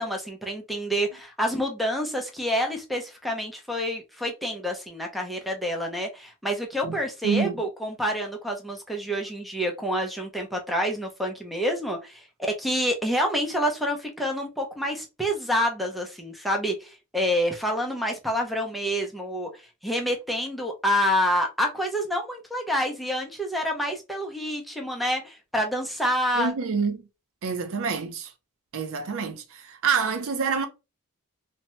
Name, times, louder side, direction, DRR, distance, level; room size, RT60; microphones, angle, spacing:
voice 1, 0.0-19.5 19.8-26.5, equal, ahead, 0.5 m, -28 dB
voice 2, 7.2-7.5 26.4-27.0 27.4-28.3 28.7-30.7, right 5 dB, 65° right, 0.5 m, -27 dB
2.7 x 2.1 x 3.0 m
head